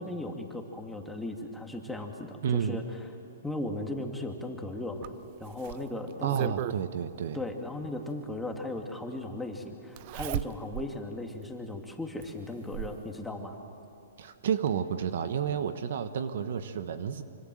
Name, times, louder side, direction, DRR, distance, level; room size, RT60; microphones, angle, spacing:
voice 1, 0.0-2.8 3.4-5.1 5.4-6.5 7.3-13.6, left 2 dB, 5° left, 2 dB, 2.4 m, -37 dB
voice 2, 2.4-2.8 6.2-7.4 14.2-17.2, right 7 dB, 65° right, 11 dB, 1.2 m, -30 dB
Zipper (clothing), 5.0-6.8 8.2-8.3 10.0-10.9 11.4-11.5 12.2-13.0 14.2-14.3 14.7-14.8, right 15 dB, 45° right, 0.6 m, -36 dB
25.0 x 25.0 x 7.8 m, 2.8 s
hypercardioid pair, 130°, 0 cm